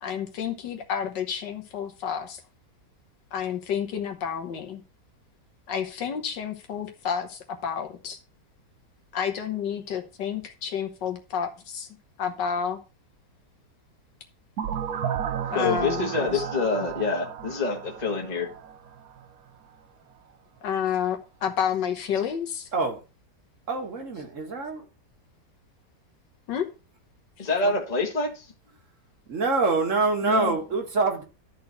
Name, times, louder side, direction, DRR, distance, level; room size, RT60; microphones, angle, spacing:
voice 1, 0.0-2.4 3.3-4.8 5.7-8.2 9.1-11.9 12.2-12.8 15.5-16.4 20.6-22.7 26.5-26.6, left 8 dB, 90° left, 1.8 m, -30 dB
sound 1, 14.6-19.3, right 8 dB, 65° right, 1.2 m, -33 dB
voice 2, 15.5-18.5 27.4-28.5 30.2-30.6, left 3 dB, 25° left, 1.6 m, -26 dB
voice 3, 23.7-24.8 27.6-27.7 29.3-31.2, right 3 dB, 45° right, 2.0 m, -25 dB
12.0 x 4.1 x 5.5 m
omnidirectional pair, 1.8 m